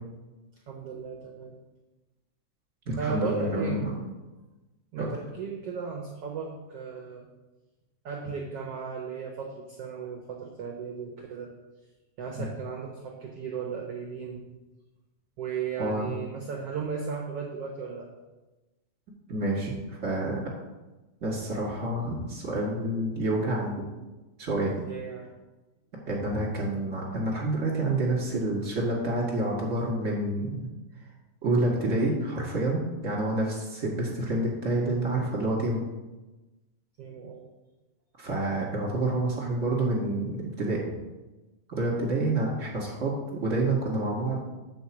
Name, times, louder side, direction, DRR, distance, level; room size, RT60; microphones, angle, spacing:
voice 1, 0.7-1.5 3.0-3.8 4.9-7.3 8.0-11.5 12.2-14.4 15.4-18.1 24.8-25.2 37.0-37.4, right 6 dB, 80° right, 0 dB, 1.3 m, -35 dB
voice 2, 2.8-3.9 5.0-5.2 15.8-16.1 19.3-20.4 21.2-23.8 24.4-24.7 26.1-30.7 31.4-35.8 38.2-40.8 41.7-44.5, right 2 dB, 35° right, -3 dB, 1.4 m, -28 dB
8.0 x 4.7 x 7.2 m, 1.1 s
omnidirectional pair, 4.2 m